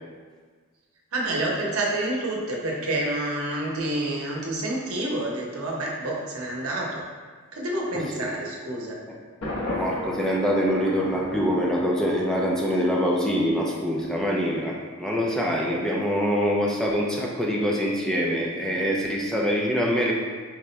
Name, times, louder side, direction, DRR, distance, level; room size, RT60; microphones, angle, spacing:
voice 1, 1.1-7.1 7.5-9.0, right 1 dB, 80° right, -2 dB, 0.8 m, -28 dB
Thunder, 9.4-12.4, left 1 dB, 60° left, 0.8 m, -34 dB
voice 2, 9.7-20.1, equal, 5° left, -3 dB, 0.3 m, -24 dB
4.6 x 2.1 x 3.8 m, 1.5 s
head